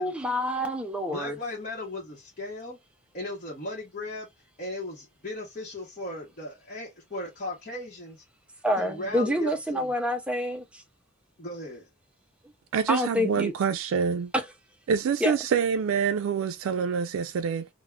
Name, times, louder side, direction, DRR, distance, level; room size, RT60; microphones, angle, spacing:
voice 1, 0.0-1.4 8.6-10.8 12.9-13.5 14.3-14.4 15.2-15.4, equal, 5° right, 0.4 m, -27 dB
voice 2, 1.1-2.8 3.1-4.3 4.6-8.2 8.8-9.9 11.4-11.9, left 1 dB, 40° left, 0.8 m, -37 dB
voice 3, 12.7-14.3 14.9-17.7, right 6 dB, 85° right, 0.3 m, -26 dB
3.4 x 2.1 x 2.2 m
head